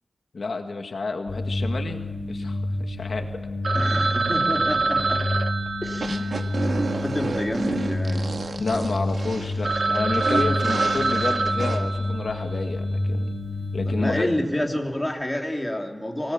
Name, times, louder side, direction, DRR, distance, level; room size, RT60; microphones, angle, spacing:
voice 1, 0.3-2.0 2.3-2.6 2.9-3.3 6.1-6.4 8.6-13.3 13.7-14.3, left 3 dB, 80° left, 5 dB, 1.9 m, -29 dB
sound 1, 1.3-14.1, left 1 dB, 60° left, 3.8 m, -29 dB
Telephone, 3.6-8.0 8.3-8.4 8.9-9.0 9.3-9.4 9.6-12.6, right 3 dB, 65° right, 1.0 m, -26 dB
voice 2, 3.7-5.4 5.8-6.4 6.7-8.3 13.8-16.3, left 1 dB, 15° left, 2 dB, 3.3 m, -29 dB
sound 2, 6.0-11.8, right 3 dB, 80° right, 1.8 m, -31 dB
25.5 x 19.0 x 7.3 m, 1.2 s
wide cardioid pair, 90°, 0 cm